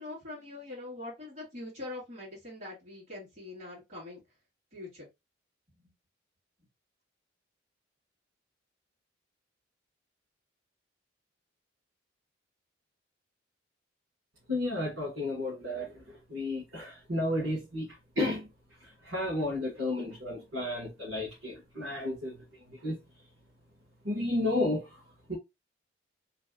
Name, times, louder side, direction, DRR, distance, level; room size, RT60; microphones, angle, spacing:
voice 1, 0.0-4.2 4.7-5.1, left 2 dB, 35° right, 2.3 m, -43 dB
voice 2, 14.5-18.5 18.8-22.9 24.0-24.9 25.3-25.4, left 1 dB, 90° right, 1.7 m, -32 dB
3.4 x 3.0 x 2.4 m
head